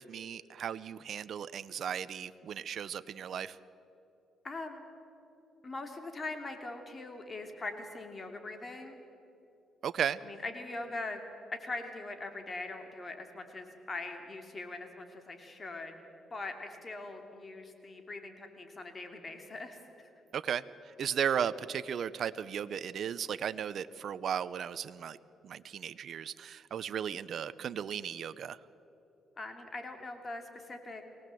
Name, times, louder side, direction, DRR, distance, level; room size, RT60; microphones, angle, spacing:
voice 1, 0.0-3.5 9.8-10.2 20.3-20.6 21.0-25.2 25.4-28.6, right 8 dB, 60° right, 15 dB, 0.6 m, -35 dB
voice 2, 4.4-4.8 5.6-9.0 10.2-11.2 11.5-15.9 16.3-20.1 29.4-31.0, left 2 dB, 30° left, 5 dB, 2.8 m, -42 dB
23.5 x 18.0 x 7.7 m, 2.9 s
cardioid pair, 90°, 0 cm